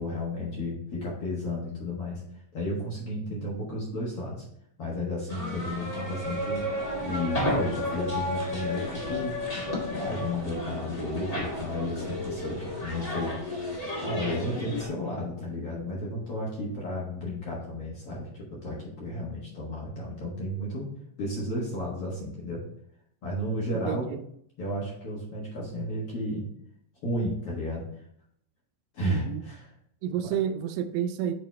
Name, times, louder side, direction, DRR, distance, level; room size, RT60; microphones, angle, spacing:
voice 1, 0.0-2.2 2.5-4.4 4.8-6.7 7.0-9.4 9.9-13.6 14.0-20.9 21.2-22.6 23.2-24.1 24.6-26.4 27.0-27.8 28.9-29.7 30.2-30.3, left 1 dB, 55° left, -4 dB, 1.8 m, -33 dB
sound 1, 5.3-14.9, left 1 dB, 80° left, 0.3 m, -32 dB
voice 2, 23.9-24.2 29.0-29.4 30.0-31.3, right 9 dB, 85° right, 9 dB, 2.3 m, -30 dB
6.7 x 3.9 x 4.1 m, 0.69 s
omnidirectional pair, 4.0 m